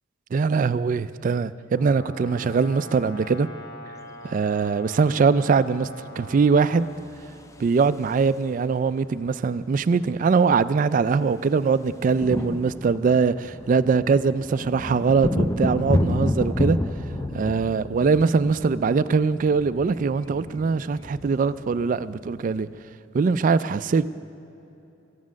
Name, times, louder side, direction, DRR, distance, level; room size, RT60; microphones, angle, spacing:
voice 1, 0.3-3.5 4.2-5.9 6.2-6.9 7.6-16.8 17.3-22.7 23.1-24.1, right 5 dB, 45° right, 0.3 m, -22 dB
Brass instrument, 1.7-7.0, left 1 dB, 65° left, 2.8 m, -42 dB
sound 1, 7.0-8.6 9.9-10.0 10.2-10.4 10.7-22.8, left 1 dB, 15° left, 0.5 m, -30 dB
14.5 x 9.5 x 6.2 m
head